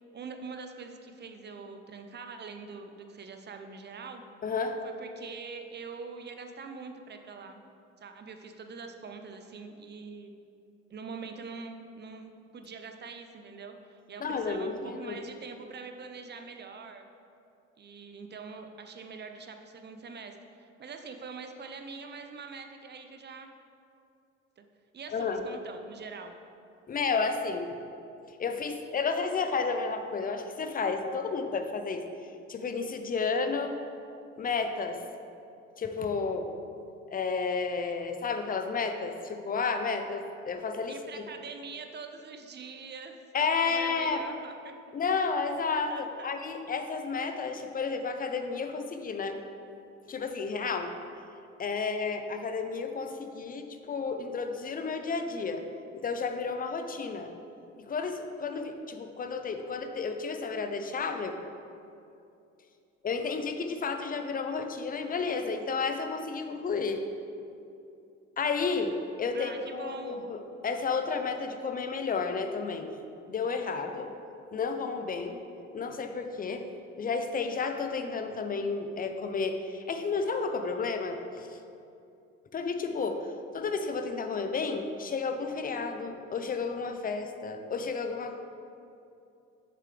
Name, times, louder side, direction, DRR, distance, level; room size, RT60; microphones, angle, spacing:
voice 1, 0.1-4.2 4.8-7.6 8.0-10.3 10.9-17.1 17.8-23.5 24.6-24.7 24.9-26.4 40.9-43.2 43.6-44.7 45.9-46.3 69.3-70.3, right 4 dB, 30° right, 6 dB, 0.6 m, -44 dB
voice 2, 4.4-4.8 14.2-15.2 25.1-25.4 26.9-27.8 28.3-32.1 32.5-33.8 34.4-35.0 35.8-36.5 37.1-41.0 43.3-44.2 44.9-49.4 50.1-50.9 51.6-55.6 55.9-57.3 57.8-61.4 63.0-67.0 68.4-72.9 73.3-74.1 74.5-75.4 75.7-76.7 77.0-81.6 82.5-88.4, left 4 dB, 25° left, 7 dB, 0.6 m, -32 dB
6.8 x 6.7 x 3.3 m, 2.6 s
hypercardioid pair, 70°, 36 cm